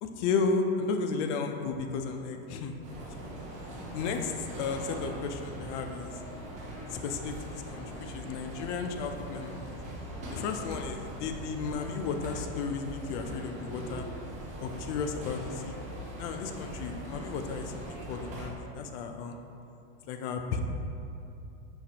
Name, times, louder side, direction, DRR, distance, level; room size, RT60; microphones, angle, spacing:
voice 1, 0.0-2.8 3.9-6.2 6.9-9.7 10.3-14.1 14.6-15.8 16.2-19.4 20.1-20.6, left 5 dB, 60° left, 5 dB, 0.5 m, -33 dB
sound 1, 2.8-18.5, right 1 dB, 20° right, 0.4 m, -41 dB
5.8 x 2.5 x 2.8 m, 2.7 s
supercardioid pair, 150°, 41 cm